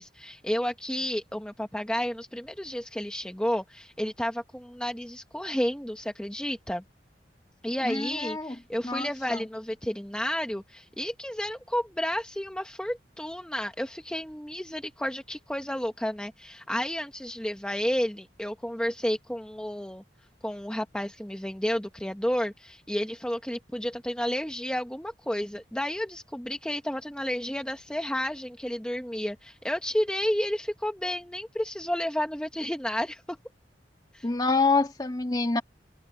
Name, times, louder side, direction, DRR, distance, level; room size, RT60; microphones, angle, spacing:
voice 1, 0.0-6.8 7.6-20.0 20.4-33.4 34.1-34.3, equal, 5° left, 0.9 m, -31 dB
voice 2, 7.8-8.5 8.8-9.4 34.2-35.6, left 3 dB, 20° left, 1.5 m, -27 dB
head